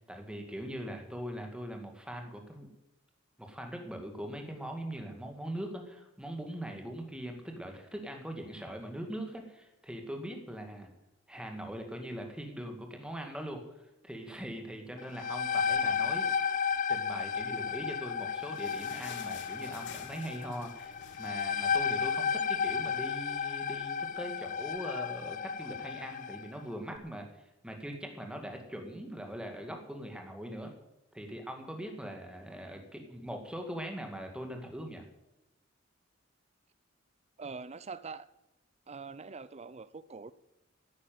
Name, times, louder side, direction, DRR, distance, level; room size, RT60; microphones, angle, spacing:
voice 1, 0.0-2.7 3.4-10.9 11.3-13.6 14.0-16.3 16.9-30.7 31.1-35.0, equal, 5° right, 2.1 m, -41 dB
sound 1, 15.0-26.5, left 6 dB, 40° left, 0.5 m, -33 dB
sound 2, 17.9-22.6 22.9-23.0 23.3-23.5 24.2-24.3, left 6 dB, 65° left, 1.3 m, -51 dB
voice 2, 37.4-38.3 38.9-40.3, right 4 dB, 35° right, 0.6 m, -43 dB
10.5 x 10.0 x 9.4 m
head